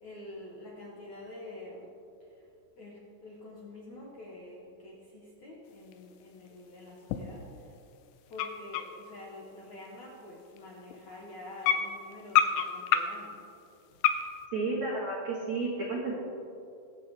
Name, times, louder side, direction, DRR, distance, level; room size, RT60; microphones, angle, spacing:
voice 1, 0.0-1.9 2.8-7.5 8.3-13.4, left 1 dB, 65° left, -5 dB, 1.9 m, -47 dB
sound 1, 5.9-6.0 6.5-6.6 7.1-7.4 7.7-7.8 8.3-9.3 9.9-10.0 10.6-10.7 10.9-11.1 11.6-13.3 14.0-14.4, left 9 dB, 80° left, 2.7 m, -28 dB
voice 2, 14.5-16.1, right 3 dB, 70° right, -5 dB, 1.7 m, -32 dB
21.0 x 7.7 x 3.4 m, 2.6 s
omnidirectional pair, 5.5 m